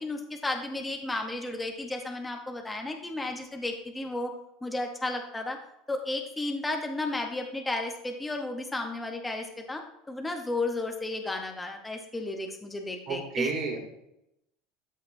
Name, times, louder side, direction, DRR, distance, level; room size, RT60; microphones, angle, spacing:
voice 1, 0.0-4.3 4.6-5.6 5.9-13.5, left 2 dB, 5° left, 3 dB, 0.7 m, -33 dB
voice 2, 13.1-13.8, right 5 dB, 40° right, 2 dB, 2.2 m, -30 dB
12.5 x 6.5 x 2.6 m, 0.83 s
cardioid pair, 165°, 0 cm